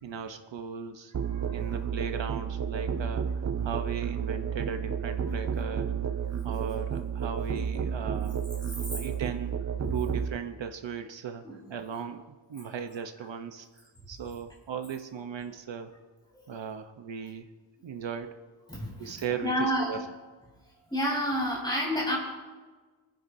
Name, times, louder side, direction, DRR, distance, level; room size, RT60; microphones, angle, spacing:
voice 1, 0.0-1.1 1.5-6.0 6.4-8.4 8.9-15.9 16.5-17.5 17.8-18.3 19.0-20.1, right 7 dB, 70° right, 6 dB, 0.9 m, -37 dB
Musical instrument, 1.1-10.4, right 7 dB, 35° right, 0.5 m, -31 dB
voice 2, 1.2-1.8 3.6-3.7 5.3-5.4 8.9-9.0 9.8-10.0 11.4-11.6 12.6-12.8 15.4-15.5 18.7-20.0 20.9-22.2, equal, 10° left, -4 dB, 4.5 m, -31 dB
25.5 x 10.5 x 2.7 m, 1.4 s
wide cardioid pair, 180°, 47 cm